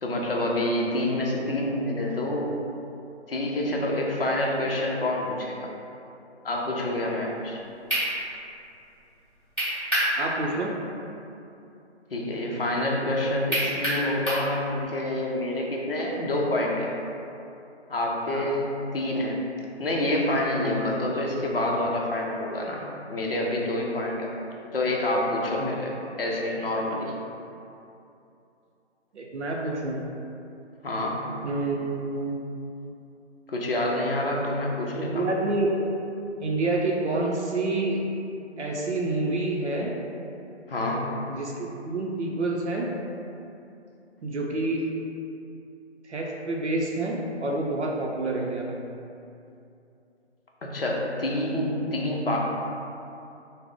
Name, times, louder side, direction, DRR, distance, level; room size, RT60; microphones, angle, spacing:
voice 1, 0.0-2.6 3.3-5.7 6.4-7.6 12.1-16.9 17.9-19.4 19.8-24.3 24.7-27.1 30.8-31.2 33.5-35.3 40.7-41.1 50.6-52.4, left 1 dB, 55° left, -2 dB, 0.6 m, -27 dB
sound 1, 7.5-7.6 7.9-8.1 9.6-10.1 10.5-10.6 13.5-14.5, equal, 5° right, 1.0 m, -25 dB
voice 2, 10.2-10.8 18.3-18.5 20.6-20.8 25.6-25.7 29.1-30.0 31.4-32.4 35.0-35.7 36.4-38.1 38.6-39.9 41.3-42.9 44.2-44.9 46.0-48.7, right 2 dB, 75° right, -2 dB, 0.6 m, -28 dB
3.5 x 2.0 x 3.6 m, 2.7 s
hypercardioid pair, 180°, 35 cm